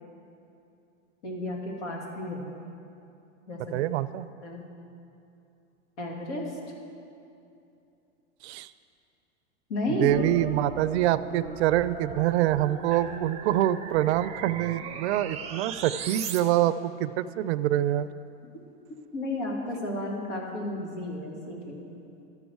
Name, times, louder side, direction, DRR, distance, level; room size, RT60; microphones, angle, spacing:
voice 1, 1.2-2.5 3.5-3.8 4.4-4.6 6.0-6.4 9.7-10.1 12.9-13.0 19.1-21.8, left 1 dB, 75° left, -1 dB, 2.2 m, -32 dB
voice 2, 3.7-4.3 8.4-8.7 10.0-18.1, right 13 dB, 65° right, 15 dB, 0.5 m, -25 dB
sound 1, 10.1-16.4, right 7 dB, 20° right, 0.6 m, -39 dB
13.0 x 6.3 x 4.7 m, 2.7 s
hypercardioid pair, 125°, 36 cm